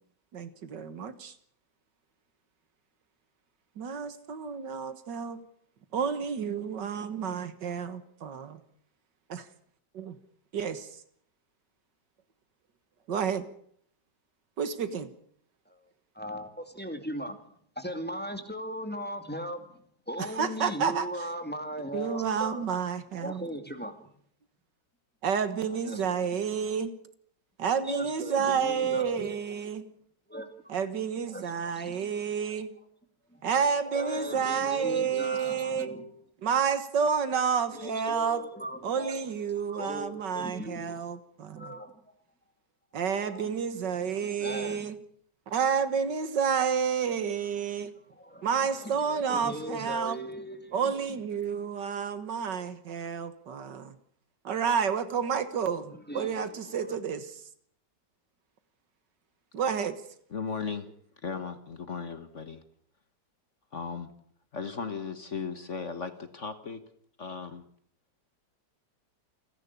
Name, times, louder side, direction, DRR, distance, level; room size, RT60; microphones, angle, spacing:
voice 1, 0.3-1.3 3.8-5.4 5.9-8.6 9.3-9.4 9.9-10.2 10.5-10.9 13.1-13.5 14.6-15.1 20.4-21.1 21.9-23.5 25.2-26.9 27.6-29.9 30.7-32.7 33.4-35.9 36.4-38.4 38.8-41.8 42.9-45.0 45.5-47.9 48.4-50.2 50.7-53.9 54.4-57.4 59.5-60.0, right 7 dB, 75° right, 2.0 m, -30 dB
voice 2, 16.1-17.4 17.8-19.8 20.1-22.6 23.2-24.1 25.5-26.3 27.8-29.6 30.3-30.5 31.3-32.1 33.3-33.4 33.8-36.1 37.3-37.4 37.7-39.3 39.7-41.0 41.6-42.1 43.1-43.8 44.4-44.9 48.1-50.9 55.4-55.5 55.9-56.9, equal, 5° left, 2.4 m, -38 dB
voice 3, 60.3-60.9 61.2-62.6 63.7-64.1 64.5-66.8 67.2-67.6, left 5 dB, 45° left, 1.5 m, -36 dB
28.5 x 11.0 x 8.4 m
omnidirectional pair, 1.9 m